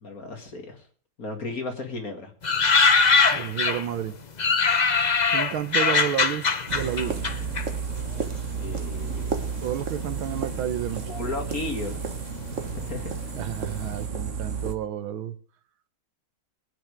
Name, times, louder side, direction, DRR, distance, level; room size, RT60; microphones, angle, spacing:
voice 1, 0.0-0.9 1.2-2.3 8.6-9.7 11.1-12.0 12.6-13.2, left 2 dB, 45° left, 2.7 m, -35 dB
sound 1, 2.4-4.0 4.4-8.3 8.5-9.4 10.0-10.6 10.9-11.0 11.2-13.5 13.8-13.9, left 5 dB, 85° left, 0.3 m, -22 dB
voice 2, 3.3-4.2 5.3-7.3 9.6-11.1 13.3-15.4, right 10 dB, 80° right, 1.8 m, -31 dB
sound 2, 6.7-14.8, right 6 dB, 40° right, 1.4 m, -32 dB
22.0 x 9.2 x 3.5 m
omnidirectional pair, 2.3 m